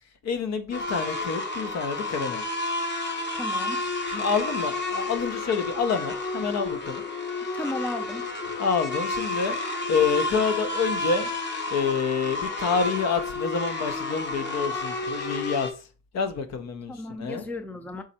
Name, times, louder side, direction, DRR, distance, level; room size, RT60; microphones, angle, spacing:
voice 1, 0.2-2.4 4.1-7.0 8.6-9.6 9.9-11.3 11.7-15.7 16.1-16.9 17.2-17.5, left 5 dB, 60° left, 0.8 m, -27 dB
sound 1, 0.7-15.7, left 2 dB, 35° left, 1.0 m, -31 dB
voice 2, 3.3-3.8 7.5-8.3 16.9-18.0, left 2 dB, 5° left, 0.5 m, -34 dB
4.1 x 2.5 x 4.2 m
cardioid pair, 90°, 30 cm